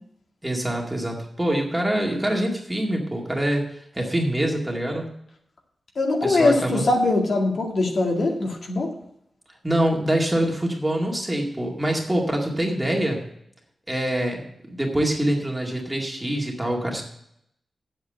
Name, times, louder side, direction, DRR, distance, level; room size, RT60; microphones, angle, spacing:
voice 1, 0.4-3.7 3.9-5.1 6.2-6.9 9.6-13.2 13.9-14.4 14.7-17.0, right 1 dB, 10° right, 0 dB, 2.1 m, -25 dB
voice 2, 6.0-8.9, left 2 dB, 60° left, 1 dB, 2.1 m, -22 dB
8.5 x 8.0 x 7.5 m, 0.75 s
wide cardioid pair, 135°, 0 cm